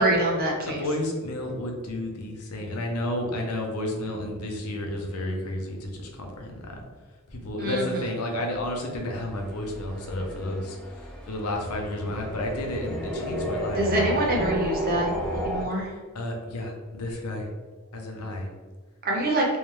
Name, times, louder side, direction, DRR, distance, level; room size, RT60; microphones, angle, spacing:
voice 1, 0.0-0.8 7.6-8.1 13.7-15.9 19.0-19.5, right 1 dB, 45° right, -2 dB, 0.9 m, -25 dB
voice 2, 0.7-6.8 7.3-10.8 11.3-14.2 16.1-17.5 17.9-18.5, left 1 dB, 75° left, 1 dB, 0.8 m, -31 dB
sound 1, 8.6-15.6, equal, 5° left, 0.7 m, -32 dB
3.2 x 3.1 x 3.2 m, 1.4 s
head